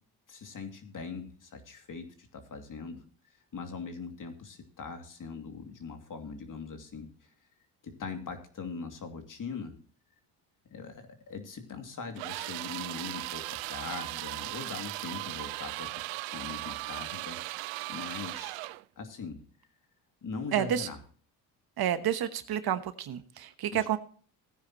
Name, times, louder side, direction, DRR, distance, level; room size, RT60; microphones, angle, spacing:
voice 1, 0.3-3.0 3.5-7.1 7.8-9.7 10.7-15.9 16.3-17.4 17.9-18.6 19.0-19.4 20.2-21.0 23.7-23.9, left 5 dB, 45° left, 6 dB, 2.6 m, -41 dB
sound 1, 12.2-18.8, right 22 dB, 80° right, 0.6 m, -37 dB
voice 2, 20.5-20.9 21.8-24.0, right 10 dB, 55° right, 11 dB, 1.1 m, -30 dB
16.5 x 9.7 x 3.0 m, 0.44 s
supercardioid pair, 80°, 45 cm